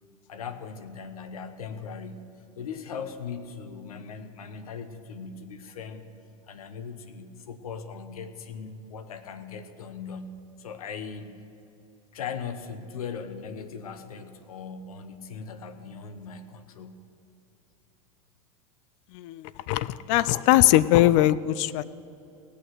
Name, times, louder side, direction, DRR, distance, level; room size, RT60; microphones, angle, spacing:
voice 1, 0.3-2.3 2.6-6.1 6.5-11.3 12.1-17.0, left 6 dB, 85° left, 10 dB, 1.0 m, -39 dB
voice 2, 19.1-21.8, left 15 dB, 60° left, 19 dB, 0.4 m, -21 dB
17.5 x 6.7 x 7.9 m, 2.6 s
hypercardioid pair, 100°, 18 cm